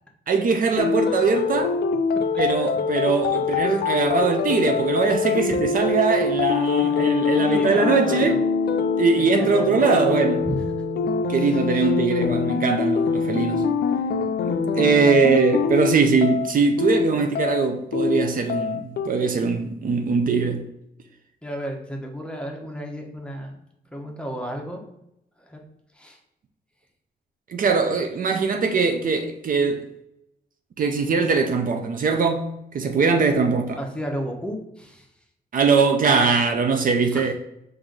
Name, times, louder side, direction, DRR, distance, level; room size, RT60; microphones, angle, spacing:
voice 1, 0.3-1.8 2.4-8.3 9.0-10.4 11.3-13.7 14.4-20.7 27.5-29.8 30.8-33.8 35.5-37.3, right 4 dB, 55° right, 0.5 m, -21 dB
sound 1, 0.8-19.1, left 5 dB, 75° left, 0.4 m, -24 dB
voice 2, 6.8-7.1 7.4-8.4 9.1-10.6 11.3-11.9 21.4-23.6 23.9-24.8 25.4-25.6 25.9-26.2 33.8-35.1 37.0-37.3, equal, 5° left, 0.9 m, -33 dB
4.5 x 2.6 x 3.8 m
cardioid pair, 95°, 17 cm